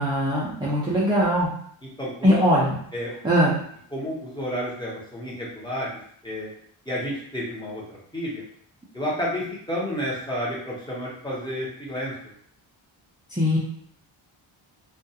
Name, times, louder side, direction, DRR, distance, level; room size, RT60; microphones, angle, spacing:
voice 1, 0.0-1.5 2.2-2.8 3.2-3.5 13.3-13.6, equal, 10° right, -6 dB, 0.3 m, -21 dB
voice 2, 2.0-2.4 2.9-3.1 3.9-6.5 6.9-7.8 8.1-8.4 8.9-12.1, equal, 10° left, -6 dB, 0.7 m, -30 dB
2.3 x 2.3 x 2.7 m, 0.64 s
wide cardioid pair, 140°, 49 cm